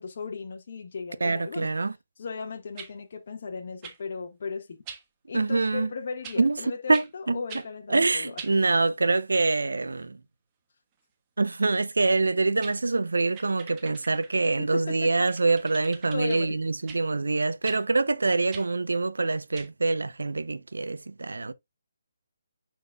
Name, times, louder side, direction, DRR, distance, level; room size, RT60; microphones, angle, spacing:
voice 1, 0.0-1.7 2.2-4.8 5.3-8.4 14.4-15.3 16.1-16.6, left 5 dB, 60° left, 1.6 m, -36 dB
voice 2, 1.2-1.9 5.3-5.9 6.4-6.6 6.9-7.4 7.9-10.2 11.4-21.5, right 3 dB, 85° right, 0.7 m, -25 dB
sound 1, 2.8-2.9 3.8-4.0 4.9-5.0 6.2-6.4 6.9-7.1 7.5-7.7 8.4-8.6 12.2-12.3 12.6-12.8 13.3-14.4 15.3-16.4 16.9-17.0 17.6-17.8 18.5-18.7 19.5-19.7, right 7 dB, 25° right, 1.4 m, -43 dB
10.0 x 4.4 x 2.3 m
hypercardioid pair, 150°, 0 cm